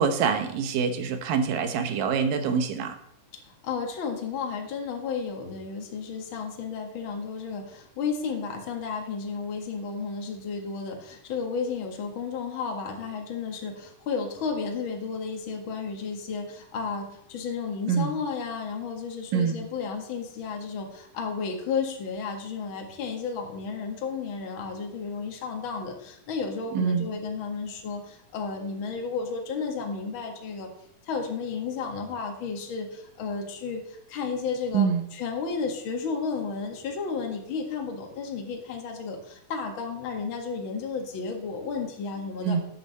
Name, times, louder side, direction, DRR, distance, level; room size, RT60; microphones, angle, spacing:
voice 1, 0.0-3.0 17.9-18.1 19.3-19.6 26.7-27.1 34.7-35.0 42.4-42.6, right 6 dB, 80° right, 8 dB, 2.8 m, -25 dB
voice 2, 3.4-30.7 31.0-42.6, left 5 dB, 45° left, 2 dB, 2.1 m, -33 dB
13.5 x 9.0 x 4.2 m, 0.74 s
omnidirectional pair, 4.0 m